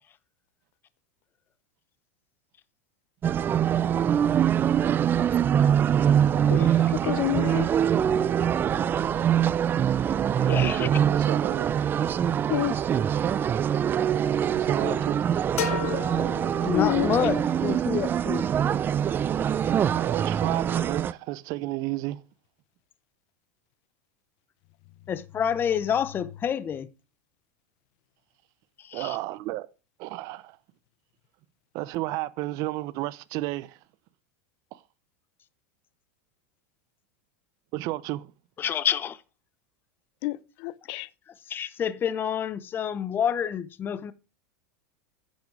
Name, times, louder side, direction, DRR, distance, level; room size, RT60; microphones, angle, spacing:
sound 1, 3.2-21.1, right 9 dB, 25° right, 0.5 m, -24 dB
voice 1, 6.4-6.8 10.4-10.9 14.8-15.0 16.6-18.5 25.1-26.9 28.8-29.2 38.6-39.2 41.5-44.1, left 8 dB, 30° left, 0.8 m, -28 dB
voice 2, 7.0-7.7 12.5-12.8 16.7-17.1 40.2-40.4 40.6-41.1, left 17 dB, 60° left, 0.8 m, -27 dB
voice 3, 10.2-11.8 14.5-15.2 19.4-19.5 19.9-22.2 28.9-29.7 30.0-30.6 31.7-33.8 34.7-34.8 37.7-38.3, right 17 dB, 50° right, 0.8 m, -32 dB
sound 2, 15.6-17.3, left 7 dB, 80° left, 2.3 m, -33 dB
10.5 x 7.4 x 4.7 m
hypercardioid pair, 115°, 8 cm